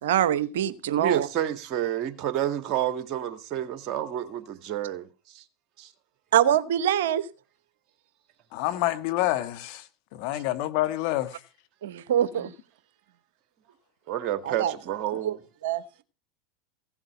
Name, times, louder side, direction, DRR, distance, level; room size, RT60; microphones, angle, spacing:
voice 1, 0.0-1.3 6.3-7.3 11.8-12.5 14.4-14.7 15.2-15.4 15.6-15.8, right 10 dB, 75° right, 0.9 m, -24 dB
voice 2, 1.0-5.1 5.3-5.4 5.8-5.9 14.1-15.4, right 11 dB, 50° right, 1.9 m, -29 dB
voice 3, 8.5-9.9 10.1-11.4, left 15 dB, 60° left, 1.4 m, -27 dB
16.5 x 7.3 x 5.8 m
hypercardioid pair, 90°, 0 cm